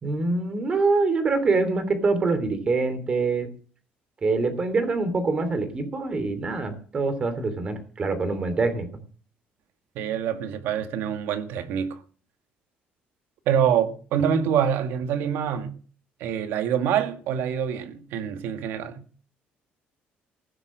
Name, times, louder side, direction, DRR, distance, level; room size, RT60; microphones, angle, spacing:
voice 1, 0.0-3.5 4.2-8.9, right 3 dB, 25° right, 3.0 m, -25 dB
voice 2, 10.0-12.0 13.5-15.7 16.2-19.1, right 8 dB, 80° right, 2.1 m, -25 dB
15.5 x 11.0 x 6.4 m
cardioid pair, 175°, 4 cm